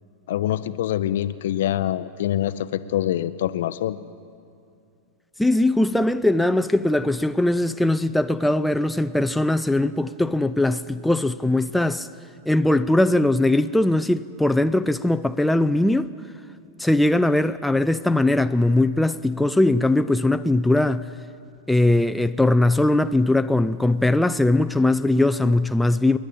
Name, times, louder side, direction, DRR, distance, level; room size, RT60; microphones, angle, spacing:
voice 1, 0.3-4.0, left 12 dB, 55° left, 0.5 m, -25 dB
voice 2, 5.4-12.1 12.5-16.1 16.8-21.1 21.7-26.2, left 2 dB, 5° left, 0.4 m, -20 dB
29.5 x 10.5 x 8.8 m
figure-of-eight pair, 90°, 0 cm